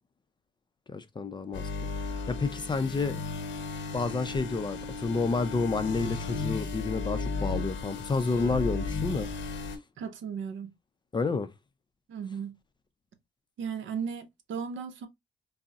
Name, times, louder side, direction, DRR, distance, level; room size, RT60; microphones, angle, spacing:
voice 1, 0.9-1.7 2.0-3.2 3.9-9.7 11.1-11.5, left 4 dB, 25° left, 0.4 m, -30 dB
sound 1, 1.5-9.8, left 4 dB, 70° left, 0.7 m, -35 dB
voice 2, 10.0-10.7 12.1-12.6 13.6-15.1, right 7 dB, 70° right, 0.6 m, -36 dB
3.7 x 2.0 x 2.3 m
cardioid pair, 90°, 20 cm